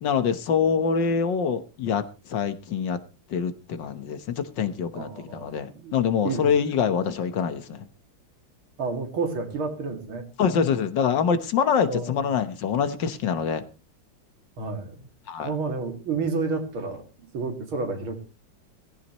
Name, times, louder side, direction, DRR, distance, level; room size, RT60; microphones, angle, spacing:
voice 1, 0.0-3.0 3.3-7.9 10.4-13.6 15.3-15.5, left 6 dB, 65° left, 10 dB, 1.8 m, -25 dB
voice 2, 4.9-5.9 6.2-6.5 8.8-10.3 11.9-12.2 14.6-15.1 15.4-18.2, right 4 dB, 90° right, 5 dB, 3.3 m, -30 dB
18.0 x 16.0 x 3.0 m, 0.33 s
omnidirectional pair, 2.2 m